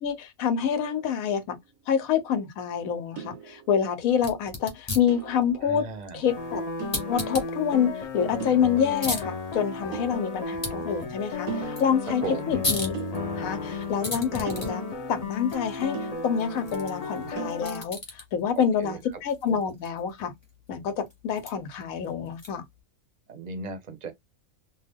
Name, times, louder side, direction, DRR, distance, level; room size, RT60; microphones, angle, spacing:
voice 1, 0.0-1.6 1.9-5.8 6.1-6.6 7.1-12.9 13.4-14.8 15.1-16.0 16.2-20.3 20.7-22.6, left 7 dB, 90° left, 1.1 m, -27 dB
sound 1, 0.7-1.7 3.2-4.2 5.1-6.3 6.8-7.7 8.4-9.4 9.9-11.1 11.5-12.5 12.9-13.9 14.5-16.8 17.4-17.5, right 8 dB, 90° right, 1.0 m, -41 dB
sound 2, 4.1-22.8, left 2 dB, 25° left, 0.8 m, -39 dB
voice 2, 5.6-6.3 12.2-12.6 18.5-19.0 23.3-24.1, right 4 dB, 45° right, 0.6 m, -36 dB
sound 3, 6.3-17.8, left 4 dB, 50° left, 0.4 m, -34 dB
2.6 x 2.2 x 3.4 m
omnidirectional pair, 1.4 m